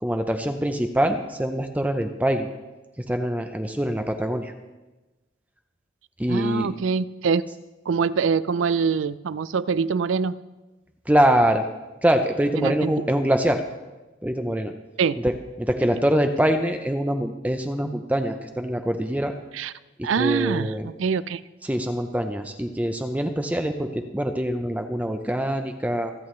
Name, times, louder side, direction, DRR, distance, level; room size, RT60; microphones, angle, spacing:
voice 1, 0.0-2.5 3.1-4.5 6.2-6.7 11.1-11.7 12.0-13.6 14.2-14.7 15.2-15.3 15.6-19.4 20.0-20.9 21.6-26.1, right 1 dB, 10° right, 6 dB, 0.6 m, -24 dB
voice 2, 6.3-7.4 7.9-10.4 12.6-12.9 15.0-15.2 19.5-19.7 20.0-21.4, right 5 dB, 85° right, 17 dB, 0.4 m, -24 dB
25.0 x 8.6 x 3.2 m, 1.1 s
head